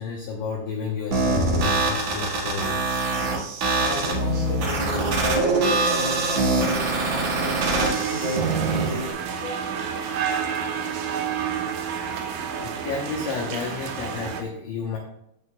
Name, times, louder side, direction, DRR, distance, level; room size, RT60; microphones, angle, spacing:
voice 1, 0.0-2.9 9.4-10.4 12.6-15.0, left 4 dB, 70° left, 0 dB, 2.1 m, -32 dB
sound 1, 1.1-9.1, right 3 dB, 55° right, 1.9 m, -24 dB
voice 2, 3.7-9.1, equal, 20° right, -3 dB, 2.6 m, -30 dB
sound 2, 7.7-14.4, right 7 dB, 75° right, 2.1 m, -29 dB
15.0 x 6.6 x 2.2 m, 0.76 s
omnidirectional pair, 4.7 m